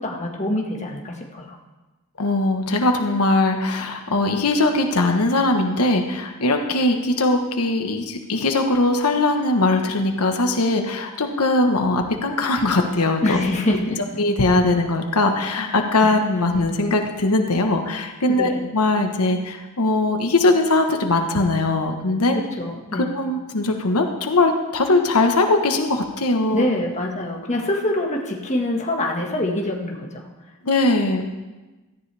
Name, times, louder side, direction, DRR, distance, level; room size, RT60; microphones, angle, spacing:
voice 1, 0.0-1.6 13.2-14.1 16.0-16.2 18.3-18.6 22.3-23.1 26.5-30.3, left 1 dB, 30° left, 0 dB, 1.6 m, -25 dB
voice 2, 2.2-13.4 14.2-22.4 22.9-26.6 30.6-31.3, left 2 dB, 85° left, 4 dB, 1.2 m, -20 dB
17.0 x 13.5 x 3.4 m, 1.2 s
head